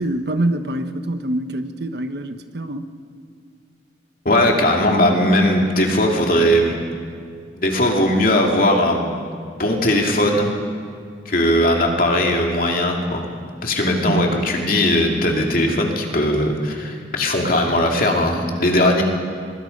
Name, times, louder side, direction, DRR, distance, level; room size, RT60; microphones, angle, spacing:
voice 1, 0.0-2.9 14.1-14.4, right 1 dB, 60° right, 8 dB, 1.2 m, -24 dB
voice 2, 4.2-6.7 7.6-9.2 9.6-10.5 11.3-13.2 13.6-19.0, left 1 dB, 50° left, 1 dB, 2.7 m, -18 dB
23.0 x 23.0 x 5.4 m, 2.3 s
head